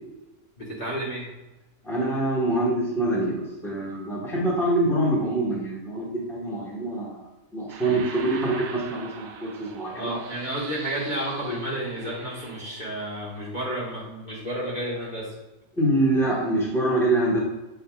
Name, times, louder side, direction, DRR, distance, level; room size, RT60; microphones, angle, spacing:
voice 1, 0.6-1.3 9.9-15.3, right 1 dB, 35° left, -7 dB, 1.7 m, -31 dB
voice 2, 1.8-7.2 7.5-10.2 15.8-17.4, right 1 dB, ahead, -5 dB, 1.4 m, -25 dB
sound 1, 7.7-13.4, right 6 dB, 65° right, 0.8 m, -42 dB
7.6 x 5.5 x 2.4 m, 1.1 s
omnidirectional pair, 1.4 m